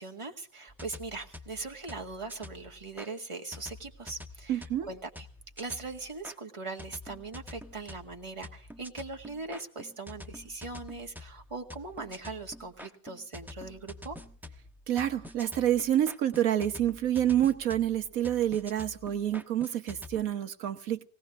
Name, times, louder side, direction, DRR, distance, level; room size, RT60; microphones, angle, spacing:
voice 1, 0.0-5.3 5.6-14.2, right 3 dB, 20° right, 2 dB, 1.9 m, -40 dB
sound 1, 0.7-3.1 3.5-6.4 6.8-20.2, left 2 dB, ahead, 1.0 m, -48 dB
voice 2, 4.5-4.9 14.9-21.1, right 11 dB, 80° right, 9 dB, 1.4 m, -28 dB
21.0 x 18.0 x 3.6 m, 0.43 s
omnidirectional pair, 1.5 m